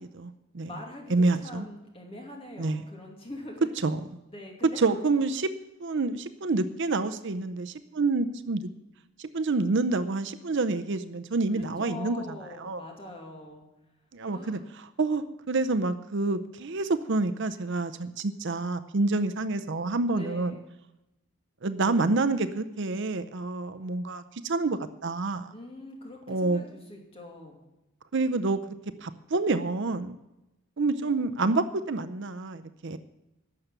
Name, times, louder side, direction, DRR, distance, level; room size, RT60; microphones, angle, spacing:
voice 1, 0.1-0.7 1.1-1.7 2.6-2.8 3.8-4.0 4.6-5.5 5.8-8.7 9.2-12.2 12.6-12.8 14.1-20.6 21.6-25.5 26.3-26.6 28.1-28.8 29.0-30.2 30.8-33.0, right 3 dB, 55° right, 11 dB, 0.6 m, -28 dB
voice 2, 0.7-3.7 4.3-5.1 11.5-13.6 14.3-14.6 20.1-20.6 25.5-27.6, left 1 dB, 25° left, 0 dB, 2.6 m, -43 dB
12.0 x 6.8 x 9.1 m, 0.94 s
head